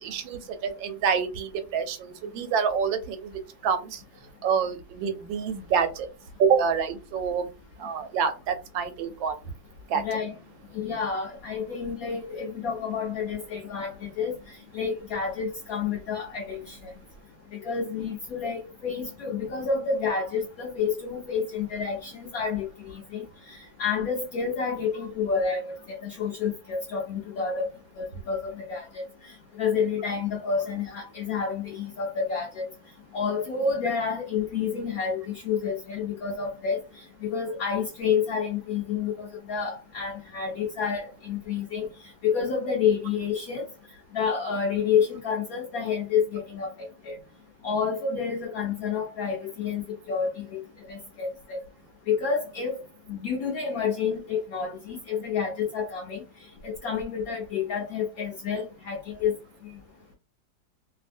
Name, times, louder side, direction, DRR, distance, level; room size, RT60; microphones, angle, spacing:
voice 1, 0.0-3.3 3.6-4.0 4.4-6.1 6.4-7.5 7.8-9.4 9.9-10.0, right 6 dB, 85° right, 1.4 m, -27 dB
voice 2, 9.9-10.3 10.7-16.9 17.6-27.7 28.0-29.3 29.6-32.7 33.1-36.8 37.2-41.9 42.2-43.6 44.1-47.2 47.6-50.6 50.9-51.6 52.1-52.8 53.1-56.2 56.6-59.4, left 6 dB, 65° left, 0.9 m, -29 dB
2.7 x 2.6 x 2.5 m
omnidirectional pair, 2.0 m